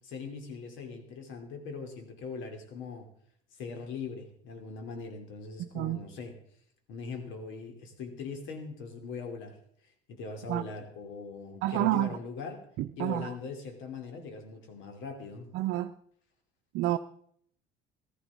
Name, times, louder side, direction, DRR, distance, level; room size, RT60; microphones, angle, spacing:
voice 1, 0.0-3.1 3.5-6.4 6.9-9.6 10.1-12.6 13.0-15.5, left 5 dB, 70° left, 2.8 m, -41 dB
voice 2, 11.6-12.2 12.8-13.3 15.5-15.9 16.7-17.0, right 15 dB, 70° right, 0.6 m, -29 dB
15.0 x 15.0 x 3.5 m
supercardioid pair, 80°, 21 cm